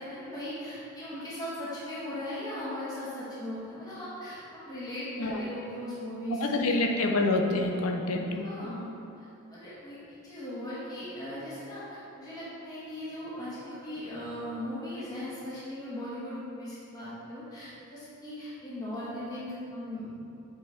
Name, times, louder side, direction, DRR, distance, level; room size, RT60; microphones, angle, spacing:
voice 1, 0.0-6.4 7.0-7.1 8.4-8.9 9.5-20.2, left 1 dB, 15° left, -10 dB, 1.5 m, -38 dB
voice 2, 6.3-8.5, left 2 dB, 75° left, 2 dB, 0.7 m, -27 dB
7.9 x 4.4 x 3.5 m, 2.7 s
head